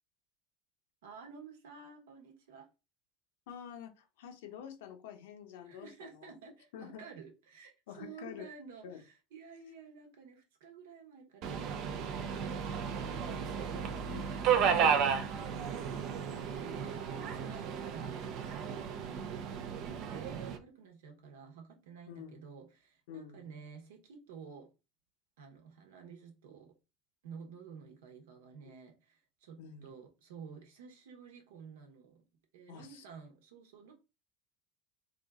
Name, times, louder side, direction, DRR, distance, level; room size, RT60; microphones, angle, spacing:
voice 1, 1.0-2.7 5.6-11.5 14.6-24.7 25.4-26.7 27.2-32.2 32.5-33.9, right 6 dB, 85° right, 1.2 m, -52 dB
voice 2, 3.5-6.4 6.7-7.0 7.9-8.5 8.8-9.0 14.1-14.3 14.6-15.1 22.1-22.3 23.1-23.5 29.6-29.9 32.7-33.0, left 8 dB, 80° left, 0.8 m, -48 dB
Subway metro underground, 11.4-20.6, right 7 dB, 55° right, 0.5 m, -33 dB
3.6 x 2.6 x 3.5 m
supercardioid pair, 100°, 0 cm